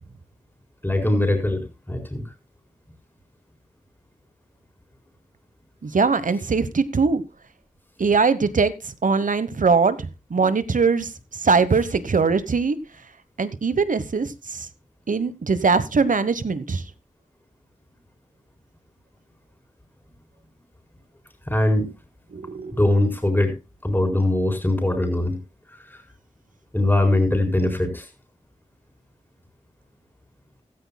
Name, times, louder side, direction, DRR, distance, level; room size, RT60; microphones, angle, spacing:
voice 1, 0.8-2.2 21.5-21.9 22.7-23.6 23.8-25.4 25.9-26.0 26.7-28.1, left 1 dB, 15° left, 4.3 m, -21 dB
voice 2, 5.8-7.2 8.0-8.7 9.0-11.1 11.4-12.8 13.4-14.7 15.1-16.8 22.3-22.8, right 4 dB, 75° right, 1.2 m, -21 dB
16.0 x 14.0 x 2.3 m
wide cardioid pair, 55°, 14 cm